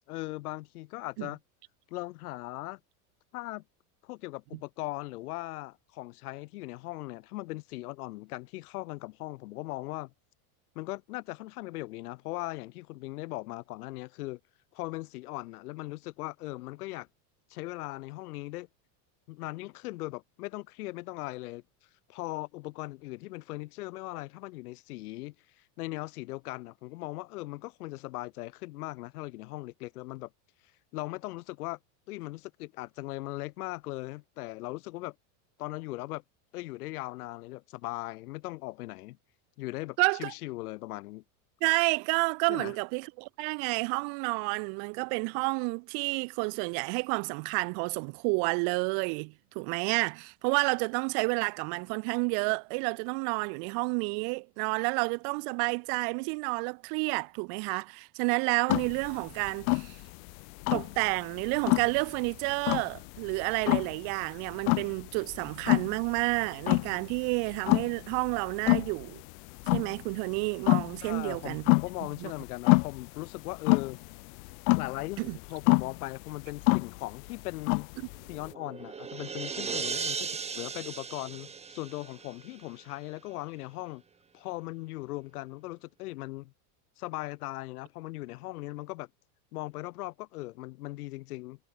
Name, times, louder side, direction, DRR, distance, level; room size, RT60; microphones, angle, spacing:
voice 1, 0.1-1.4 1.9-2.8 3.3-3.6 4.0-10.1 10.7-14.4 14.7-17.1 17.5-18.7 19.3-21.6 22.1-25.3 25.8-30.3 30.9-31.8 32.1-35.1 35.6-36.2 36.5-39.2 39.6-41.2 42.5-42.7 71.0-74.0 74.7-77.9 78.3-80.3 80.5-84.0 84.3-86.5 87.0-89.1 89.5-91.7, left 20 dB, 85° left, 1.8 m, -39 dB
voice 2, 40.0-40.3 41.6-60.0 60.7-69.2 69.7-71.6 72.2-72.3 75.2-75.4, right 40 dB or more, 60° right, 0.9 m, -30 dB
sound 1, 58.7-78.5, left 32 dB, 65° left, 0.5 m, -28 dB
sound 2, 78.2-82.8, right 6 dB, 15° right, 1.0 m, -37 dB
supercardioid pair, 130°, 44 cm